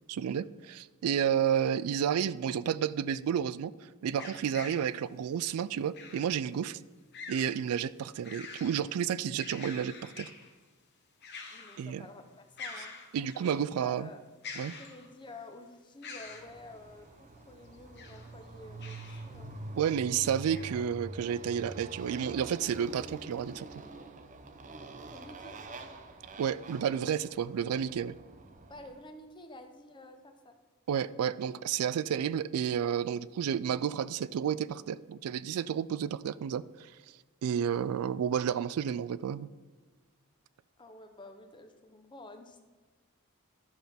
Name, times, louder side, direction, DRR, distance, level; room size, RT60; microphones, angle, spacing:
voice 1, 0.1-3.7 4.0-6.8 7.3-10.3 11.8-12.0 13.1-14.1 14.6-14.7 19.8-23.7 26.4-28.1 30.9-36.9 37.4-39.5, right 8 dB, 85° right, 17 dB, 0.3 m, -31 dB
sound 1, 4.2-4.9 5.9-6.4 7.1-7.6 8.0-8.8 9.2-10.5 11.2-11.9 12.2-12.3 12.6-13.6 14.4-15.3 16.0-16.5 17.7-18.3 18.8-19.3 19.8-19.9 20.5-20.7, left 4 dB, 50° left, 1.1 m, -45 dB
voice 2, 11.5-14.3 14.8-19.6 25.1-25.6 28.7-30.6 40.8-42.6, left 2 dB, 20° left, 6 dB, 0.7 m, -50 dB
Motorcycle, 16.3-29.0, right 2 dB, 35° right, 0.6 m, -46 dB
12.5 x 5.8 x 3.5 m, 1.3 s
head